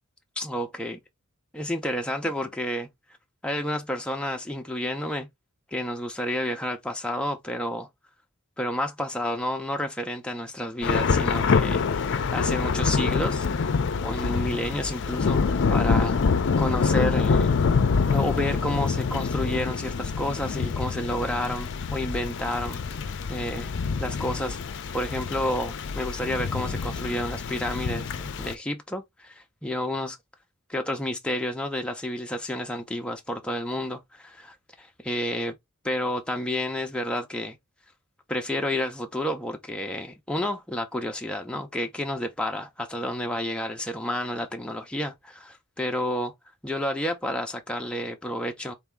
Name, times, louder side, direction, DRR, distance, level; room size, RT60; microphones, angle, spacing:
voice 1, 0.4-1.0 1.5-2.9 3.4-5.3 5.7-7.9 8.6-13.5 14.0-17.6 18.1-22.8 23.3-23.7 24.0-30.2 30.7-35.5 35.8-37.6 38.3-46.3 46.6-48.7, left 1 dB, 5° left, 0.5 m, -30 dB
Thunder / Rain, 10.8-28.5, left 5 dB, 55° left, 0.5 m, -26 dB
3.9 x 2.7 x 3.4 m
head